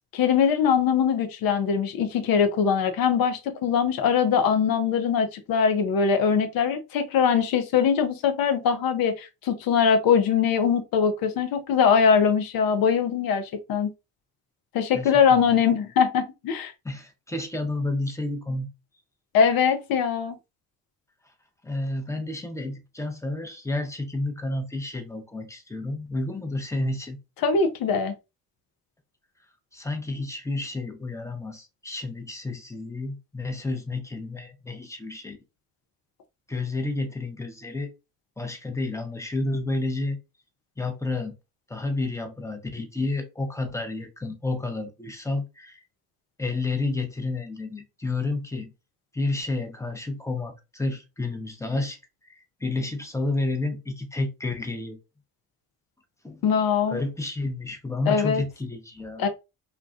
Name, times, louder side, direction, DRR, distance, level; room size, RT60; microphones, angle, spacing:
voice 1, 0.1-13.9 14.7-16.7 19.3-20.4 27.4-28.1 56.4-57.0 58.1-58.4 59.2-59.3, left 6 dB, 55° left, 0.7 m, -22 dB
voice 2, 14.9-15.6 16.8-18.7 21.6-27.2 29.7-35.4 36.5-37.9 38.4-40.2 40.8-41.3 41.7-45.8 46.4-48.7 49.1-52.0 52.2-55.0 56.2-56.4 56.9-59.3, left 2 dB, 5° left, 0.7 m, -30 dB
2.3 x 2.2 x 2.5 m
hypercardioid pair, 50°, 42 cm